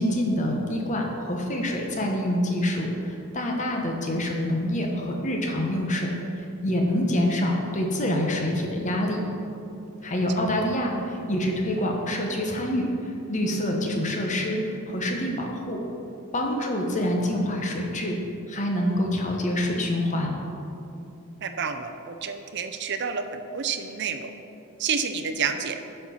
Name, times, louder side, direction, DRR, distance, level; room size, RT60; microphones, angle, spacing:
voice 1, 0.0-6.1 6.6-9.2 10.0-15.8 16.3-18.2 18.5-20.3, left 1 dB, 35° left, 1 dB, 1.1 m, -26 dB
voice 2, 21.4-24.3 24.8-25.8, right 6 dB, 55° right, 7 dB, 0.6 m, -29 dB
10.5 x 4.5 x 5.8 m, 2.7 s
head